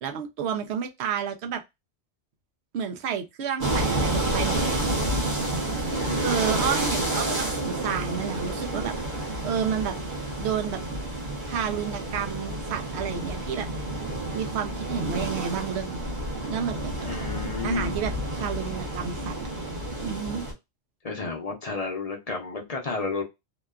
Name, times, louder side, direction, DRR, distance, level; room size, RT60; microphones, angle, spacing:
voice 1, 0.0-1.6 2.7-4.8 5.9-9.9 10.4-10.8 11.5-13.7 14.3-16.1 16.5-17.2 17.6-19.4 20.0-20.4, right 7 dB, 85° right, 0.9 m, -31 dB
sound 1, 3.6-20.5, right 1 dB, 50° right, 1.1 m, -29 dB
voice 2, 5.9-6.4 17.0-18.0 21.0-23.2, left 4 dB, 40° left, 0.7 m, -32 dB
2.9 x 2.2 x 2.3 m
omnidirectional pair, 1.1 m